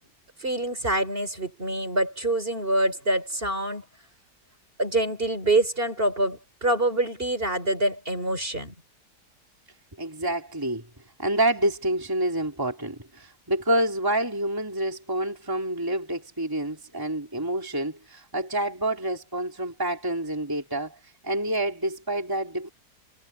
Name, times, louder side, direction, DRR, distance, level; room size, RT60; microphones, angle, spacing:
voice 1, 0.4-3.8 4.8-8.7, right 1 dB, 30° right, 4.1 m, -25 dB
voice 2, 10.0-10.9 11.2-22.7, right 1 dB, 10° right, 3.2 m, -28 dB
omnidirectional pair, 1.8 m